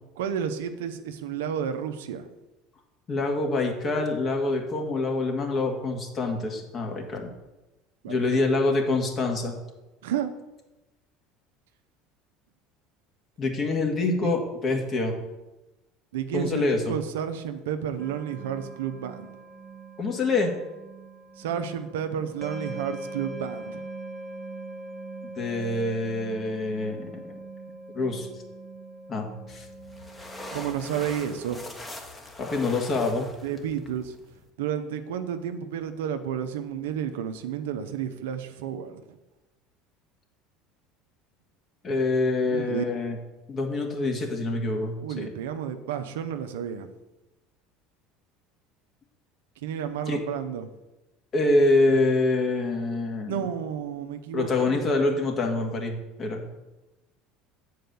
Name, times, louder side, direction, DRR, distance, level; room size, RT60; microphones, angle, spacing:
voice 1, 0.2-2.3 8.0-8.2 10.0-10.3 14.2-14.3 16.1-19.3 21.4-23.8 30.5-31.6 33.4-34.1 34.6-39.0 42.5-43.0 45.0-46.9 49.6-50.7 53.3-55.0, right 8 dB, 80° right, 8 dB, 0.7 m, -31 dB
voice 2, 3.1-7.3 8.1-9.6 13.4-15.1 16.3-17.0 20.0-20.5 25.4-27.4 27.9-28.3 29.1-29.7 32.4-33.3 41.8-43.2 43.5-45.3 50.1-50.2 51.3-53.4 54.3-56.4, left 2 dB, 40° left, 2 dB, 1.9 m, -26 dB
sound 1, 18.0-31.1, right 2 dB, 15° right, 1.3 m, -41 dB
sound 2, 29.5-34.5, left 2 dB, 20° left, 1.4 m, -42 dB
7.8 x 4.8 x 6.9 m, 1.0 s
hypercardioid pair, 80°, 0 cm